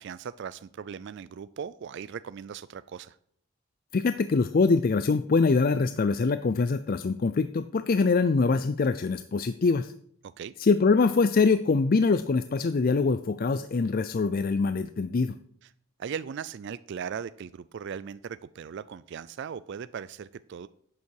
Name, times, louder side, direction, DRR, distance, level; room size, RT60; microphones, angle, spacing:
voice 1, 0.0-3.2 10.4-10.5 16.0-20.7, right 7 dB, 50° right, 16 dB, 0.3 m, -38 dB
voice 2, 3.9-9.9 10.6-15.4, left 4 dB, 40° left, 12 dB, 0.4 m, -24 dB
11.0 x 8.4 x 4.7 m, 0.65 s
head